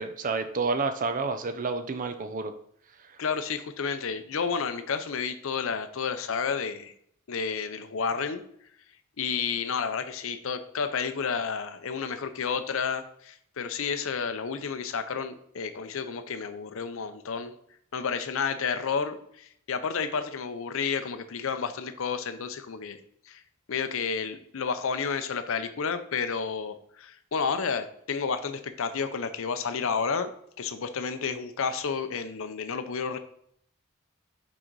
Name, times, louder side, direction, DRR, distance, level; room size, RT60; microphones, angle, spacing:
voice 1, 0.0-2.5, right 4 dB, 40° right, 9 dB, 0.5 m, -29 dB
voice 2, 3.2-6.9 7.3-8.4 9.2-17.6 17.9-23.0 23.3-23.4 23.7-30.3 30.6-33.2, left 6 dB, 65° left, 10 dB, 0.6 m, -31 dB
6.3 x 3.8 x 4.6 m, 0.68 s
head